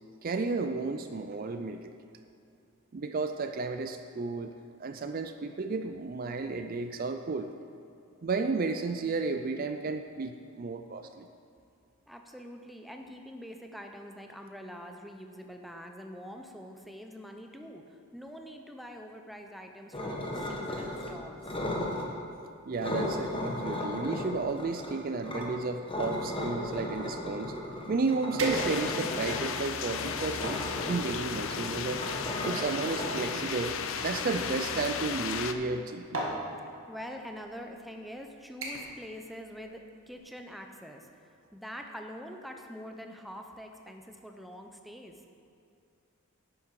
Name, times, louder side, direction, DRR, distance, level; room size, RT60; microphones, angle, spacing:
voice 1, 0.2-1.9 2.9-4.5 4.8-7.5 8.2-11.3 22.7-27.5 27.9-30.6 30.9-32.0 32.4-33.8 34.0-36.2, right 4 dB, 40° right, 7 dB, 0.4 m, -33 dB
voice 2, 12.1-21.6 36.9-41.2 41.5-45.2, equal, ahead, 3 dB, 0.6 m, -45 dB
sound 1, 19.9-21.1 21.4-22.1 22.8-25.4 25.9-33.9, left 1 dB, 25° left, 1.2 m, -36 dB
sound 2, 28.4-29.1 29.8-30.6 31.6-34.5 35.6-35.8 36.1-36.4 37.3-37.5 37.9-38.2 38.6-39.0 39.3-39.7 40.1-40.2, right 2 dB, 65° right, 1.7 m, -37 dB
sound 3, 28.5-35.5, left 7 dB, 65° left, 0.5 m, -35 dB
11.5 x 8.6 x 4.8 m, 2.5 s
head